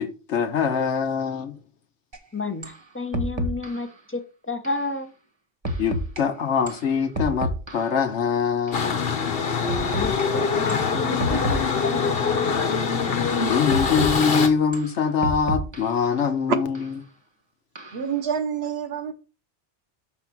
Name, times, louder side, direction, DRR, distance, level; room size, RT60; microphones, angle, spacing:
voice 1, 0.0-1.5 5.8-9.2 13.5-16.8, left 6 dB, 75° left, 1.2 m, -23 dB
sound 1, 2.1-2.2 2.6-2.8 3.1-3.9 4.6-4.9 5.6-6.2 6.7-8.0 8.7-8.9 9.7-10.2 10.7-10.9 11.2-12.0 12.7-13.0 13.7-14.3 14.7-16.0 16.7-16.9 17.8-18.1, equal, 25° right, 1.0 m, -30 dB
voice 2, 2.3-4.2 4.5-5.1 9.9-12.6, left 3 dB, 15° left, 0.6 m, -31 dB
sound 2, 8.7-14.5, left 5 dB, 55° left, 1.1 m, -24 dB
voice 3, 17.9-19.1, right 6 dB, 65° right, 1.0 m, -26 dB
6.3 x 3.9 x 6.0 m
omnidirectional pair, 1.2 m